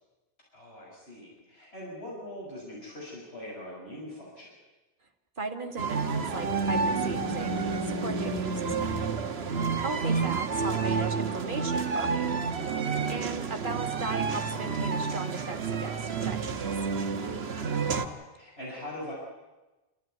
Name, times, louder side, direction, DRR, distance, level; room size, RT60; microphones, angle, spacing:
voice 1, 0.5-4.5 9.6-10.0 12.8-13.2 17.6-19.1, left 1 dB, 85° left, -4 dB, 6.7 m, -42 dB
voice 2, 5.4-9.0 9.8-12.4 13.1-16.7, right 3 dB, 55° right, 5 dB, 2.0 m, -37 dB
sound 1, 5.8-18.1, right 5 dB, 80° right, 1.4 m, -30 dB
sound 2, 6.4-10.0, left 1 dB, 20° left, 1.7 m, -37 dB
26.5 x 14.0 x 9.4 m, 1.1 s
omnidirectional pair, 1.0 m